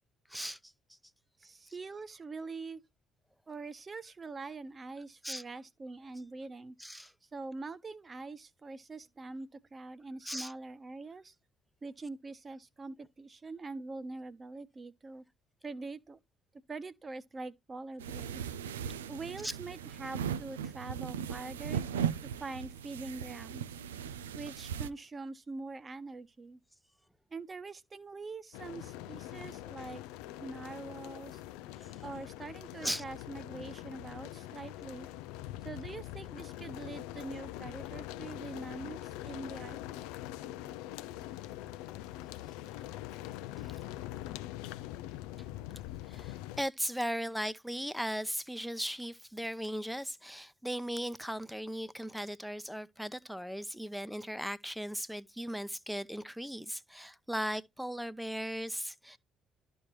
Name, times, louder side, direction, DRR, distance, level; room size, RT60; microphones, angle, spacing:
voice 1, 0.3-0.7 5.2-5.4 6.8-7.1 10.3-10.5 19.4-19.5 31.8-31.9 32.8-33.0 42.7-42.8 43.6-43.8 45.4-45.6 46.1-59.2, equal, ahead, 0.8 m, -37 dB
voice 2, 1.4-2.8 3.5-6.7 7.3-11.3 11.8-15.2 15.6-16.2 16.7-18.5 19.1-21.8 22.4-23.6 24.3-26.6 27.3-30.0 30.4-31.4 32.0-35.1 35.6-40.0, right 3 dB, 30° right, 1.2 m, -44 dB
sound 1, 18.0-24.9, right 8 dB, 80° right, 0.4 m, -38 dB
sound 2, 28.5-46.6, left 14 dB, 70° left, 0.4 m, -43 dB
13.0 x 4.4 x 3.2 m
figure-of-eight pair, 45°, 0 cm